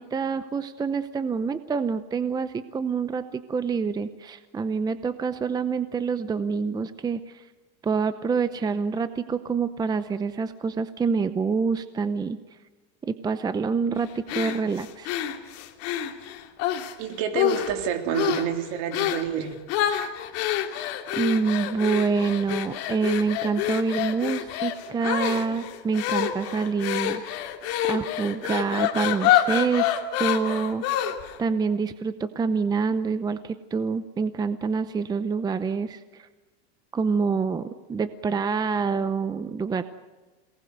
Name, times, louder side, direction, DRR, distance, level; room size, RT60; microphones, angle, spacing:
voice 1, 0.0-7.5 7.8-12.4 13.0-15.1 21.1-27.4 27.9-30.8 31.4-36.3 36.9-39.8, right 5 dB, 10° right, 11 dB, 0.7 m, -27 dB
sound 1, 14.3-16.9 17.3-17.8 18.1-18.5 18.9-19.3 19.7-31.4, left 11 dB, 50° left, 2.8 m, -27 dB
voice 2, 17.0-19.6, right 7 dB, 55° right, 5 dB, 3.6 m, -28 dB
28.0 x 19.0 x 8.1 m, 1.3 s
supercardioid pair, 145°, 32 cm